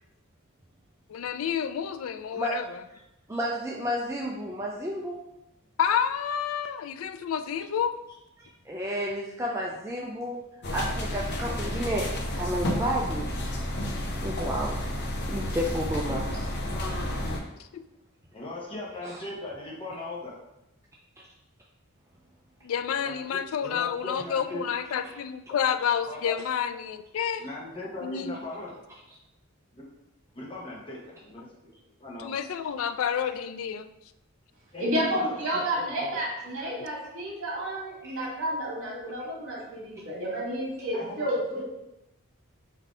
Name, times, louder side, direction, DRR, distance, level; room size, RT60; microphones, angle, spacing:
voice 1, 1.1-2.8 5.8-7.9 17.7-17.8 22.6-27.4 28.0-28.4 32.2-33.9, left 8 dB, 65° left, 10 dB, 0.3 m, -29 dB
voice 2, 3.3-5.2 8.7-10.4 10.7-12.1 12.4-13.3 14.2-14.8 15.3-16.5 19.0-19.2 38.0-38.2, equal, 10° right, -3 dB, 0.3 m, -31 dB
sound 1, 10.6-17.4, left 1 dB, 50° left, 0.7 m, -31 dB
voice 3, 18.3-20.4 23.0-24.6 26.1-26.4 27.4-28.8 29.7-29.8 30.3-31.7 32.0-32.3 34.7-36.1 40.9-41.3, left 2 dB, 25° left, -4 dB, 0.9 m, -39 dB
voice 4, 34.8-41.6, right 1 dB, 60° right, -4 dB, 1.7 m, -31 dB
4.0 x 2.7 x 4.8 m, 0.88 s
head